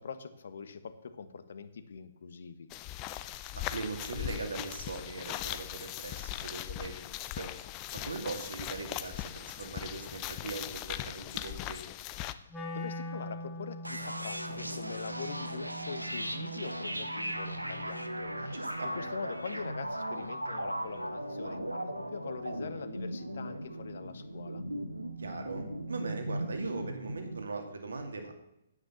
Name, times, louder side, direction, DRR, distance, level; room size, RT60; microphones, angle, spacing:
voice 1, 0.0-2.7 12.5-24.6, left 5 dB, 55° left, 12 dB, 1.1 m, -43 dB
sound 1, 2.7-12.3, left 14 dB, 25° left, 0.6 m, -39 dB
voice 2, 3.5-7.5 7.9-11.8 18.5-18.9 25.2-28.4, right 3 dB, 65° right, 5 dB, 2.3 m, -40 dB
Wind instrument woodwind instrument, 12.5-18.6, left 1 dB, 5° left, 2.3 m, -44 dB
sound 2, 13.8-27.5, right 1 dB, 85° right, 1.2 m, -38 dB
9.6 x 8.9 x 7.0 m, 0.82 s
figure-of-eight pair, 125°, 0 cm